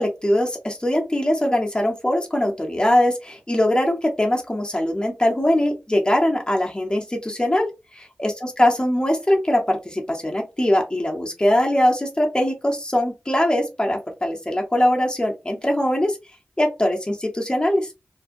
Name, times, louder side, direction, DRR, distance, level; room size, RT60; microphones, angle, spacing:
voice 1, 0.0-16.2 16.6-17.9, left 1 dB, 20° left, 1 dB, 0.7 m, -21 dB
2.5 x 2.1 x 2.5 m, 0.25 s
cardioid pair, 40°, 4 cm